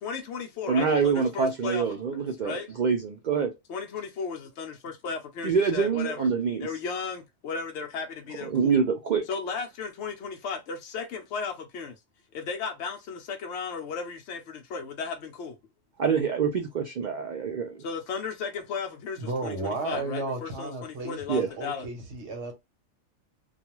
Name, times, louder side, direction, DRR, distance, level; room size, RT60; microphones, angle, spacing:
voice 1, 0.0-2.7 3.7-6.3 6.6-8.8 9.3-11.9 12.3-15.6 17.8-21.9, left 5 dB, 65° left, 0.8 m, -35 dB
voice 2, 0.7-3.5 5.4-6.7 8.4-9.2 16.0-17.8 21.3-21.5, right 6 dB, 85° right, 0.4 m, -26 dB
voice 3, 19.2-22.5, right 3 dB, 60° right, 1.1 m, -33 dB
2.4 x 2.3 x 2.9 m
omnidirectional pair, 1.4 m